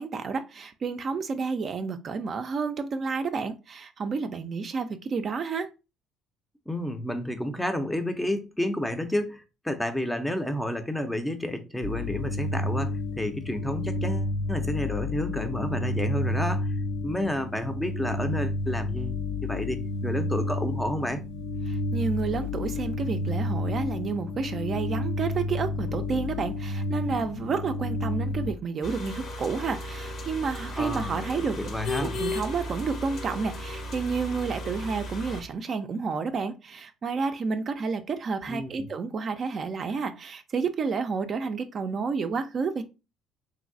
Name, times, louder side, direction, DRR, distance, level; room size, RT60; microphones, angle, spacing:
voice 1, 0.0-5.7 21.7-31.6 32.0-42.8, right 5 dB, 45° right, 0.4 m, -30 dB
voice 2, 6.7-16.7 17.0-19.2 19.4-21.2 30.7-31.2 31.6-32.2 38.5-38.9, left 1 dB, 10° left, 0.5 m, -30 dB
sound 1, 11.8-28.5, left 2 dB, 90° left, 0.3 m, -30 dB
sound 2, 28.8-35.4, left 1 dB, 55° left, 0.7 m, -35 dB
3.1 x 2.6 x 2.5 m
supercardioid pair, 80°, 0 cm